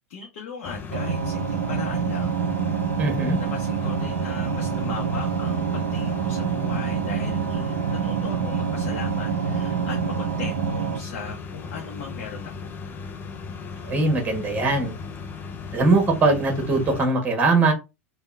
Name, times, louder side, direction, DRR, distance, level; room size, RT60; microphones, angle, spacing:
voice 1, 0.1-2.4 3.3-12.7, left 5 dB, 60° left, 0.8 m, -38 dB
sound 1, 0.6-17.0, left 5 dB, 25° left, 0.6 m, -37 dB
sound 2, 0.9-11.0, right 7 dB, 70° right, 0.5 m, -26 dB
voice 2, 3.0-3.4 13.8-14.9 15.7-17.7, right 3 dB, 20° right, 1.4 m, -21 dB
3.6 x 2.3 x 3.4 m
figure-of-eight pair, 85°, 8 cm